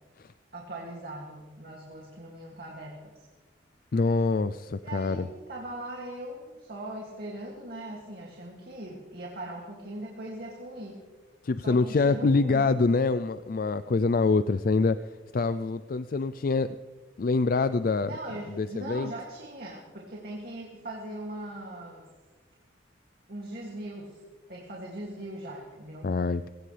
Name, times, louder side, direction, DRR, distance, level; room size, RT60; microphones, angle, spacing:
voice 1, 0.5-3.3 4.8-11.0 11.6-12.7 18.1-22.1 23.3-24.2 24.5-26.1, right 1 dB, 55° right, -2 dB, 2.4 m, -40 dB
voice 2, 3.9-5.3 11.4-15.0 15.3-16.8 17.2-18.1 18.6-19.1 26.0-26.5, left 3 dB, 50° left, 13 dB, 0.4 m, -25 dB
22.0 x 17.0 x 3.3 m, 1.4 s
head